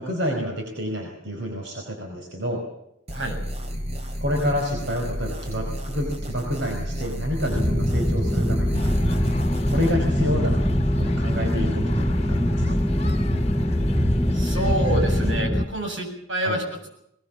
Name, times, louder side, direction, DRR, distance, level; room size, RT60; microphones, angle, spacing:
voice 1, 0.0-2.6 4.2-8.9 9.6-10.6 11.0-12.8 16.4-16.6, equal, 70° right, 2 dB, 4.8 m, -28 dB
sound 1, 3.1-9.9, equal, 35° right, 3.1 m, -32 dB
sound 2, 7.5-15.7, equal, 5° right, 0.9 m, -23 dB
sound 3, 8.7-15.4, left 1 dB, 35° left, 1.5 m, -30 dB
voice 2, 14.3-16.9, right 1 dB, 85° right, 3 dB, 7.6 m, -28 dB
21.5 x 21.0 x 7.3 m, 0.76 s
head